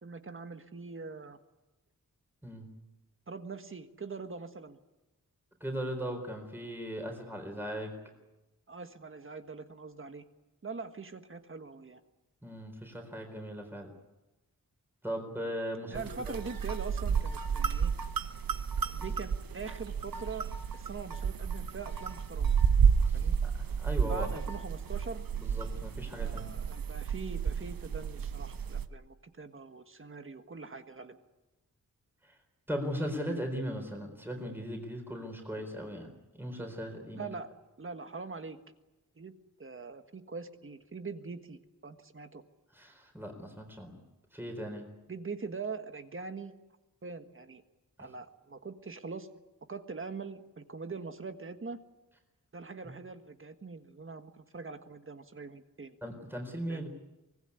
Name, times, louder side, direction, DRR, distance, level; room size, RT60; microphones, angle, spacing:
voice 1, 0.0-1.4 3.3-4.8 8.7-10.2 10.6-12.0 15.9-17.9 18.8-22.5 23.1-23.4 24.1-25.2 26.2-31.2 37.1-37.5 37.8-38.6 39.2-39.3 39.6-42.4 45.1-46.5 47.0-47.6 48.0-49.3 49.7-51.8 52.5-56.0 56.7-56.9, right 4 dB, 40° right, 8 dB, 1.5 m, -43 dB
voice 2, 5.6-7.9 12.4-13.9 15.0-16.0 23.0-24.3 25.3-26.5 32.2-32.4 32.7-37.3 42.7-44.0 44.3-44.9 56.0-56.9, equal, 5° right, 3 dB, 4.1 m, -38 dB
sound 1, 15.9-28.9, right 6 dB, 90° right, 1.0 m, -31 dB
24.5 x 19.0 x 9.7 m, 1.0 s
wide cardioid pair, 150°, 34 cm